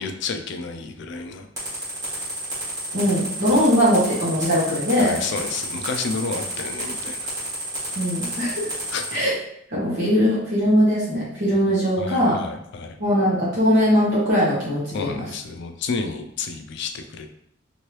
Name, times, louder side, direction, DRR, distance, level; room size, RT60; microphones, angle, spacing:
voice 1, 0.0-1.5 3.5-3.7 5.0-7.3 8.9-9.0 12.0-13.0 14.9-17.3, left 4 dB, 55° left, 5 dB, 0.4 m, -30 dB
sound 1, 1.6-9.1, right 1 dB, 15° right, 1.4 m, -30 dB
voice 2, 2.9-5.1 7.9-8.7 9.1-9.3 9.7-12.4 13.0-15.2, equal, 55° right, -8 dB, 1.0 m, -20 dB
3.1 x 2.6 x 3.0 m, 0.74 s
head